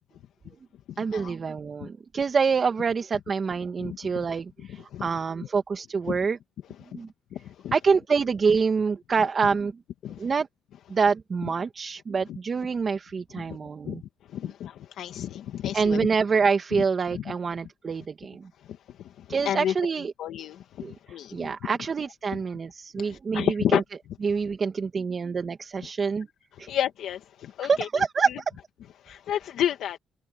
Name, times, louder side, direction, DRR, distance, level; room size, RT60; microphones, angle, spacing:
voice 1, 1.0-6.4 6.9-7.1 7.7-9.7 10.2-10.5 10.9-14.0 15.7-18.5 19.3-20.1 20.8-20.9 21.3-23.8 24.2-26.3 26.6-26.7 27.6-28.3, right 5 dB, 40° right, 1.5 m, -26 dB
voice 2, 3.8-4.2 4.9-5.0 6.1-6.2 7.3-7.7 10.0-10.3 13.5-13.6 13.9-14.0 14.3-16.0 17.1-17.2 19.5-19.7 20.2-21.5 23.0-23.8 26.7-27.9 29.0-30.0, left 10 dB, 80° left, 1.8 m, -30 dB
cardioid pair, 90°, 0 cm